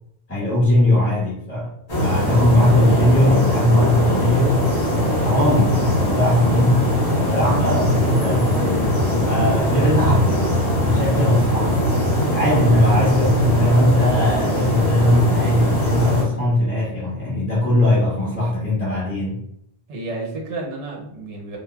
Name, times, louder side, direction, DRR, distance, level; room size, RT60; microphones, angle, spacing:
voice 1, 0.3-1.7 2.0-4.8 5.1-6.9 7.1-10.3 10.8-19.4, left 1 dB, 15° left, -8 dB, 0.7 m, -19 dB
sound 1, 1.9-16.2, left 1 dB, 45° left, 1.8 m, -20 dB
voice 2, 12.6-13.0 19.9-21.6, right 2 dB, 80° right, -1 dB, 1.1 m, -31 dB
3.7 x 2.1 x 2.3 m, 0.77 s
omnidirectional pair, 1.2 m